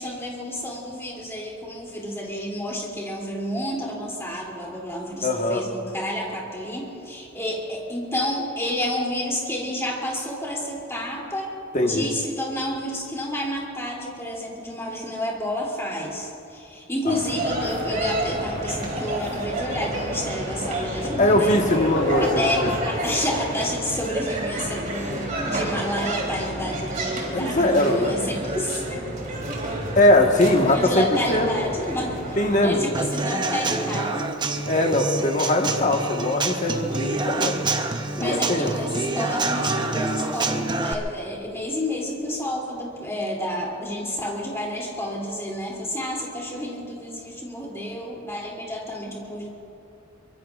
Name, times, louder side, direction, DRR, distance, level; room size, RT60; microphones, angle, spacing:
voice 1, 0.0-21.6 22.2-29.0 30.7-34.4 37.3-37.6 38.2-49.5, left 1 dB, 15° left, -3 dB, 2.9 m, -30 dB
voice 2, 5.2-5.6 11.7-12.1 17.1-17.2 21.2-22.7 27.3-28.2 29.9-31.5 32.4-32.9 34.7-37.5 38.1-38.7, left 1 dB, 35° left, 2 dB, 1.4 m, -21 dB
sound 1, 17.1-32.8, right 1 dB, 40° right, 3.3 m, -30 dB
Livestock farm animals working animals, 17.5-22.8, left 2 dB, 60° left, 1.8 m, -32 dB
Human voice / Acoustic guitar / Drum, 32.9-40.9, right 3 dB, 20° right, 0.8 m, -27 dB
24.0 x 23.0 x 2.5 m, 2.7 s
head